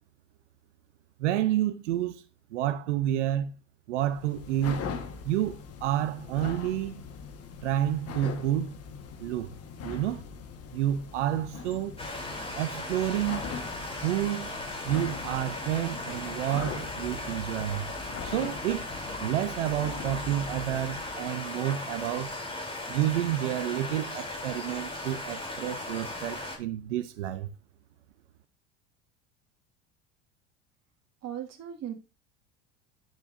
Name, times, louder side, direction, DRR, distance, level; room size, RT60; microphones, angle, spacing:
voice 1, 1.2-2.2 2.5-3.5 3.9-4.9 5.2-7.0 7.6-8.7 9.2-9.5 9.8-10.2 10.7-11.9 12.5-13.5 14.0-14.5 14.8-17.9 18.2-18.9 19.2-22.3 22.9-27.5, right 12 dB, 85° right, 0.7 m, -29 dB
sound 1, 4.0-21.2, left 6 dB, 40° left, 1.5 m, -41 dB
sound 2, 12.0-26.6, left 1 dB, 15° left, 3.4 m, -37 dB
voice 2, 31.2-31.9, right 10 dB, 45° right, 2.2 m, -37 dB
9.0 x 7.5 x 2.6 m
hypercardioid pair, 80°, 35 cm